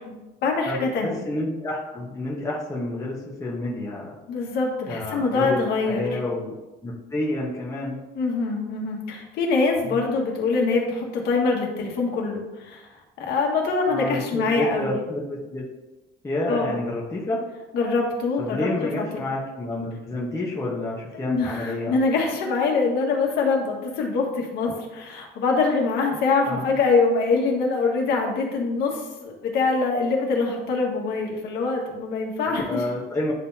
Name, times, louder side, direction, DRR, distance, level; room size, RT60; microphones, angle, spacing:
voice 1, 0.0-1.2 4.3-6.2 8.1-12.9 13.2-15.0 16.5-16.8 17.7-19.3 21.1-32.9, left 4 dB, 75° left, 0 dB, 1.7 m, -24 dB
voice 2, 0.6-4.1 4.9-6.5 6.8-8.0 9.8-10.0 13.9-15.6 16.2-17.4 18.4-21.9 26.5-26.7 32.7-33.3, left 1 dB, 20° left, -5 dB, 1.2 m, -29 dB
11.0 x 3.9 x 2.8 m, 1.1 s
cardioid pair, 110°, 17 cm